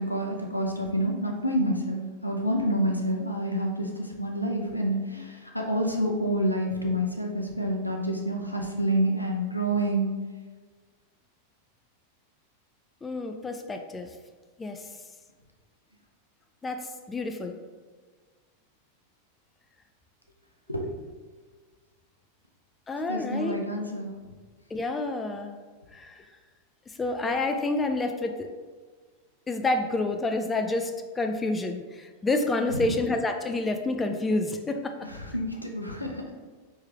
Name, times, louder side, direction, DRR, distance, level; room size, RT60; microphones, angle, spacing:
voice 1, 0.0-10.1 20.7-20.9 23.1-24.1 32.7-32.8 35.0-36.3, right 1 dB, 90° left, 2 dB, 0.6 m, -28 dB
voice 2, 13.0-14.1 14.6-14.8 16.6-17.6 22.9-23.6 24.7-25.6 25.9-26.2 27.0-28.5 29.5-35.1, left 2 dB, 15° left, 6 dB, 0.4 m, -29 dB
4.4 x 3.2 x 3.4 m, 1.4 s
figure-of-eight pair, 90°, 0 cm